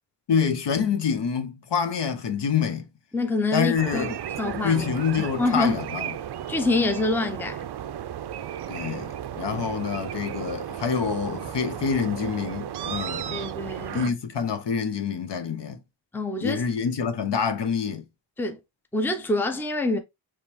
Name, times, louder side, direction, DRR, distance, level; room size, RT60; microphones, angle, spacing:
voice 1, 0.3-2.9 3.5-4.2 4.6-6.1 8.7-13.4 13.9-15.8 16.4-18.0, left 6 dB, 65° left, 0.9 m, -26 dB
voice 2, 3.1-4.9 5.1-5.8 6.5-7.7 9.4-9.6 13.3-14.1 16.1-16.7 18.4-18.6 18.9-20.0, left 2 dB, 5° left, 0.5 m, -26 dB
sound 1, 3.8-14.1, right 10 dB, 60° right, 0.5 m, -34 dB
5.1 x 3.1 x 2.9 m
wide cardioid pair, 130°, 46 cm